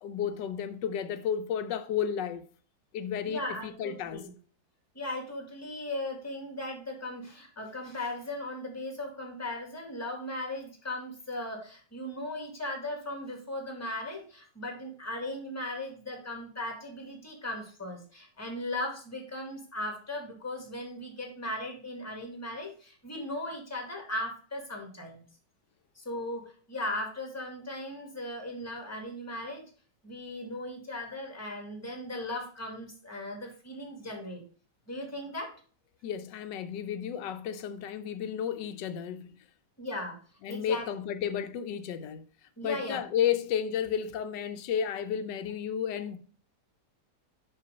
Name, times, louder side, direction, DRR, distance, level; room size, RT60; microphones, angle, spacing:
voice 1, 0.0-2.4 2.9-4.2 36.0-39.3 40.4-42.2 42.6-46.2, left 8 dB, 90° left, 1.3 m, -32 dB
voice 2, 3.3-4.3 4.9-25.2 26.0-29.6 30.0-34.4 34.9-35.5 39.8-40.2 40.5-40.9 42.6-43.0, left 1 dB, 10° left, 1.8 m, -37 dB
5.6 x 5.6 x 5.1 m
omnidirectional pair, 1.9 m